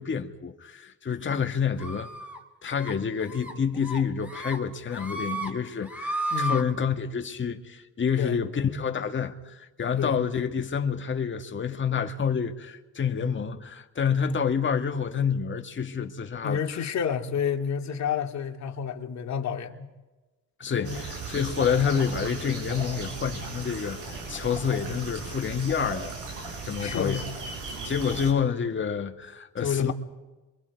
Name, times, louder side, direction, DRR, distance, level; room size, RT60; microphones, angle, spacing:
voice 1, 0.0-2.1 2.6-16.6 20.6-26.1 26.6-27.3 27.8-29.9, left 7 dB, 40° left, 2.0 m, -28 dB
sound 1, 1.8-2.4 2.7-2.9 3.3-3.5 3.8-4.6 4.9-5.5 5.8-6.6, right 1 dB, 5° right, 2.7 m, -32 dB
voice 2, 6.3-6.6 8.2-8.4 10.0-10.2 16.4-19.9 20.8-21.0 26.8-27.3 29.6-29.9, left 7 dB, 65° left, 2.3 m, -29 dB
sound 2, 20.8-28.3, right 3 dB, 90° right, 6.1 m, -37 dB
27.0 x 24.0 x 4.8 m
cardioid pair, 90°, 30 cm